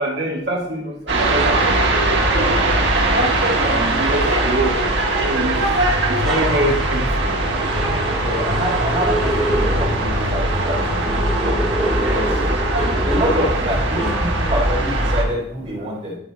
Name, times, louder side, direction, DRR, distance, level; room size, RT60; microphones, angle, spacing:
voice 1, 0.0-1.5 1.8-2.1 3.6-4.8 5.2-5.6 6.1-7.3, right 1 dB, 65° right, -1 dB, 1.7 m, -24 dB
sound 1, 1.1-15.2, right 2 dB, 80° right, 1.5 m, -20 dB
sound 2, 2.8-14.8, right 1 dB, ahead, 2.8 m, -29 dB
voice 2, 8.2-11.1 11.9-12.4 13.0-16.2, equal, 35° right, -4 dB, 3.3 m, -26 dB
10.5 x 4.4 x 4.1 m, 0.77 s
head